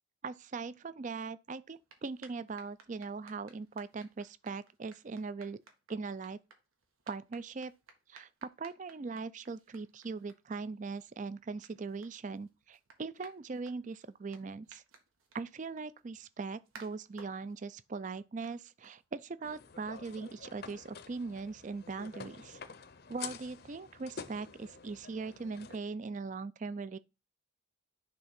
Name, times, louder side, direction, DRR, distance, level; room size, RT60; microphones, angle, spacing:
voice 1, 0.2-5.6 5.9-6.4 7.1-7.7 8.1-14.8 15.3-22.6 23.1-27.0, right 4 dB, 35° right, 0.4 m, -40 dB
sound 1, 1.6-19.4, right 4 dB, 90° right, 1.7 m, -61 dB
sound 2, 19.4-25.8, left 6 dB, 50° left, 0.6 m, -48 dB
10.5 x 3.6 x 5.9 m
head